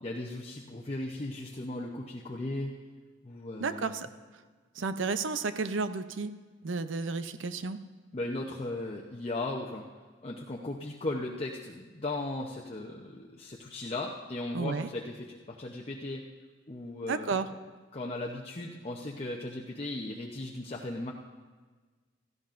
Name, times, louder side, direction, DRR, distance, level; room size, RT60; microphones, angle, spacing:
voice 1, 0.0-2.7 3.2-4.0 8.1-9.8 10.2-16.2 16.7-17.4 17.9-21.1, left 2 dB, 30° left, -2 dB, 0.7 m, -37 dB
voice 2, 3.6-4.1 4.8-6.3 6.6-7.8 14.5-14.9 17.1-17.5, right 4 dB, 85° right, 11 dB, 0.6 m, -32 dB
17.0 x 13.5 x 2.5 m, 1.4 s
head